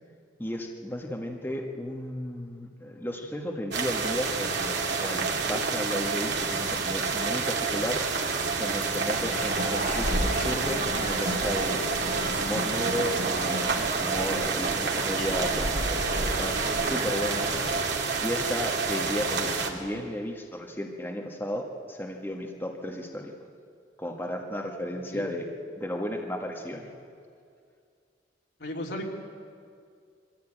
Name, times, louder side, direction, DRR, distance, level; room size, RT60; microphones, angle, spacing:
voice 1, 0.4-8.0 8.6-11.8 12.4-15.9 16.4-17.5 18.2-23.3 24.0-25.4 25.8-26.9, equal, 10° left, 0 dB, 1.5 m, -34 dB
sound 1, 3.7-19.7, right 4 dB, 75° right, 2.4 m, -29 dB
sound 2, 9.1-17.8, right 1 dB, 55° right, 4.1 m, -33 dB
sound 3, 9.3-12.5 14.2-14.3 14.7-15.3, left 3 dB, 50° left, 5.9 m, -46 dB
voice 2, 28.6-29.1, left 1 dB, 70° left, 0 dB, 3.1 m, -34 dB
22.5 x 15.0 x 9.1 m, 2.3 s
head